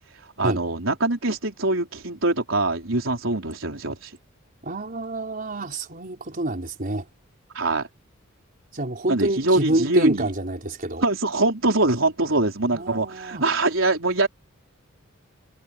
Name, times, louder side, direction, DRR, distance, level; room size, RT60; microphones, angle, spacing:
voice 1, 0.4-4.1 7.5-7.9 9.1-10.3 11.0-14.3, right 2 dB, 70° right, 4.9 m, -23 dB
voice 2, 4.6-7.0 8.7-11.0 12.7-13.4, right 1 dB, 45° right, 4.7 m, -27 dB
head